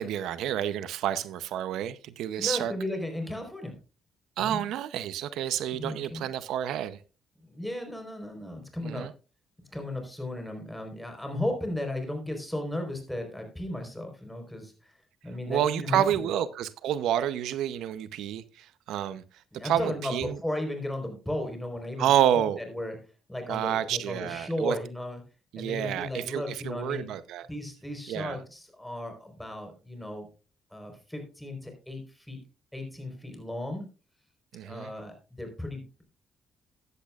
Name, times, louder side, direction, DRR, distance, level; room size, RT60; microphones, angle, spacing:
voice 1, 0.0-2.7 4.4-7.0 8.8-9.1 15.5-19.2 19.6-20.4 22.0-22.6 23.5-24.8 25.5-27.5 28.1-28.4 34.5-34.9, right 10 dB, 85° right, 0.7 m, -29 dB
voice 2, 2.4-3.8 4.4-4.6 5.7-6.3 7.4-9.1 9.6-14.9 15.2-16.3 19.5-23.0 23.3-25.2 25.5-27.1 27.5-30.3 30.7-32.4 32.7-33.9 34.6-36.0, left 1 dB, 5° left, 4.3 m, -35 dB
15.0 x 10.5 x 2.4 m
cardioid pair, 90°, 0 cm